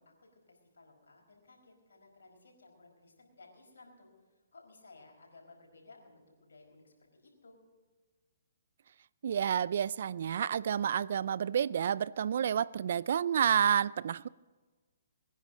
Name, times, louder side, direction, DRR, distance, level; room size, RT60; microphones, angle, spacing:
voice 1, 0.0-4.1 4.5-7.6, left 3 dB, 85° left, 4.9 m, -58 dB
voice 2, 9.2-14.3, right 8 dB, 60° right, 0.4 m, -29 dB
21.5 x 10.5 x 5.1 m
hypercardioid pair, 140°, 0 cm